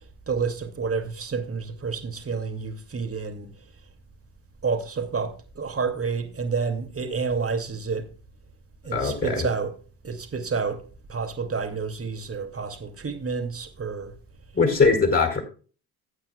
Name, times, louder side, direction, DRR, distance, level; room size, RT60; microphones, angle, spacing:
voice 1, 0.3-3.5 4.6-8.0 8.8-9.7 10.0-10.8 11.1-14.1, right 5 dB, 30° right, 2.4 m, -29 dB
voice 2, 8.9-9.5 14.5-15.4, left 4 dB, 30° left, 4.7 m, -21 dB
16.5 x 8.8 x 2.3 m
hypercardioid pair, 60°, 45 cm